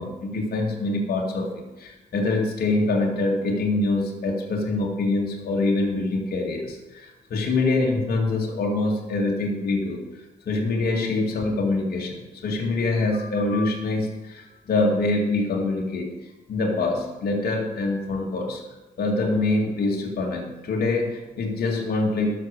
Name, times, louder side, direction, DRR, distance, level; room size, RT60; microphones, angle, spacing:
voice 1, 0.0-10.0 10.5-16.1 16.5-18.6 19.0-22.4, left 2 dB, 65° left, -1 dB, 2.2 m, -25 dB
12.5 x 6.7 x 6.7 m, 1.1 s
cardioid pair, 80°, 17 cm